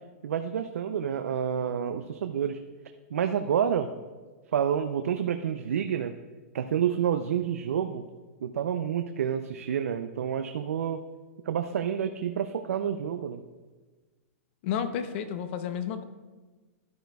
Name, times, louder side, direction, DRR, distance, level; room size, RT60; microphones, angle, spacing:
voice 1, 0.2-2.6 3.1-3.9 4.5-6.1 6.5-8.0 8.4-11.0 11.5-13.4, right 8 dB, 85° right, 8 dB, 0.5 m, -29 dB
voice 2, 14.6-16.1, left 8 dB, 50° left, 10 dB, 0.8 m, -31 dB
11.5 x 9.0 x 2.3 m, 1.3 s
hypercardioid pair, 135°, 8 cm